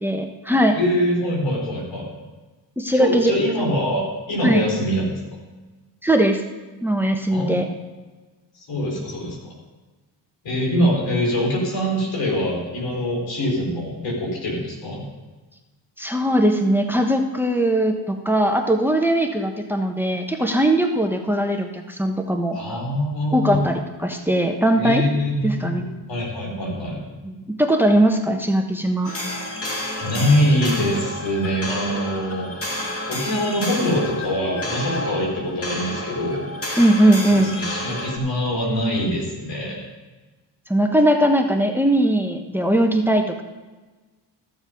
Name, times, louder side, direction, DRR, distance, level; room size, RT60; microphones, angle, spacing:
voice 1, 0.0-0.8 2.8-3.3 4.4-4.6 6.0-6.4 6.8-7.6 16.0-22.6 23.3-25.0 25.4-25.8 27.2-27.3 27.6-29.1 36.8-37.6 40.7-43.4, right 1 dB, 5° right, 4 dB, 1.1 m, -19 dB
voice 2, 0.8-2.1 2.9-5.1 7.3-7.7 8.5-9.5 10.4-15.0 22.5-23.6 24.8-27.0 30.0-32.6 33.1-36.8 37.3-39.8, equal, 85° left, -1 dB, 4.2 m, -24 dB
sound 1, 29.0-38.2, left 1 dB, 30° left, 2.0 m, -30 dB
14.0 x 7.2 x 5.2 m, 1.2 s
cardioid pair, 90°, 43 cm